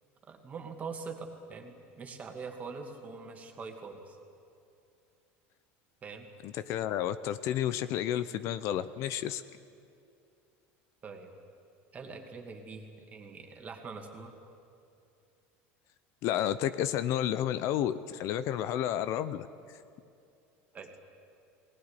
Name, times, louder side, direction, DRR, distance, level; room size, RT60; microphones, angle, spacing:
voice 1, 0.3-4.2 6.0-6.3 11.0-11.3 11.9-14.3 20.7-20.9, right 4 dB, 25° right, 3 dB, 2.4 m, -43 dB
voice 2, 6.4-9.4 16.2-19.5, left 11 dB, 55° left, 14 dB, 0.7 m, -31 dB
19.5 x 19.0 x 9.8 m, 2.5 s
supercardioid pair, 140°, 6 cm